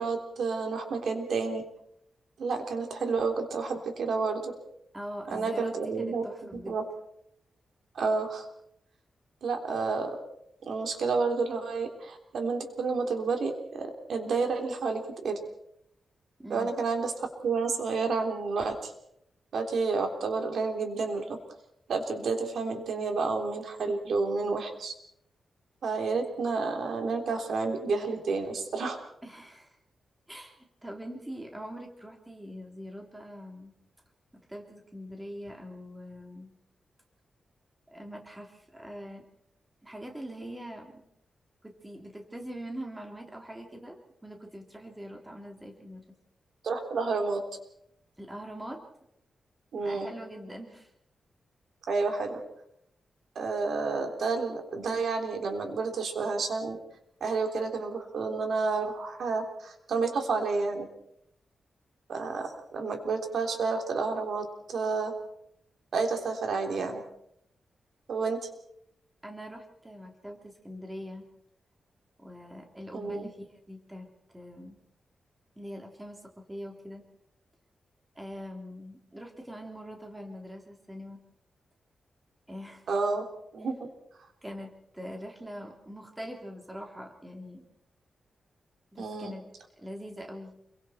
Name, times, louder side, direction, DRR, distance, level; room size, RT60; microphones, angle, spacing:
voice 1, 0.0-1.6 2.4-4.5 5.3-6.2 6.5-6.8 8.0-8.5 9.4-10.2 10.7-15.4 16.5-18.9 19.5-21.4 21.9-24.9 25.8-29.0 46.6-47.4 49.7-50.1 51.9-52.4 53.4-56.8 57.2-60.9 62.1-65.1 65.9-67.0 68.1-68.4 72.9-73.3 82.9-83.2 83.5-83.8 89.0-89.3, right 4 dB, 70° right, 4 dB, 3.5 m, -30 dB
voice 2, 4.9-6.8 16.4-16.7 29.2-29.8 30.3-33.7 34.5-36.5 37.9-39.2 39.8-41.0 41.6-44.0 44.2-46.0 48.2-48.8 49.8-50.9 69.2-71.3 72.2-74.1 74.3-74.8 75.6-77.0 78.1-81.2 82.5-82.8 84.4-87.6 88.9-89.4 89.8-90.5, equal, 10° right, 2 dB, 3.3 m, -43 dB
29.0 x 23.0 x 4.4 m, 0.75 s
wide cardioid pair, 145°, 0 cm